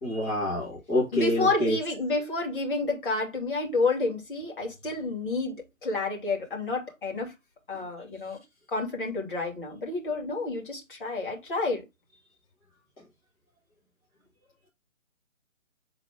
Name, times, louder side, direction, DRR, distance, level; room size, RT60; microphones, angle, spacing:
voice 1, 0.0-1.8, left 1 dB, 10° left, 1.4 m, -27 dB
voice 2, 1.1-7.3 7.7-8.4 8.7-11.8, left 3 dB, 40° left, 2.8 m, -29 dB
7.7 x 4.0 x 3.6 m
figure-of-eight pair, 145°, 40 cm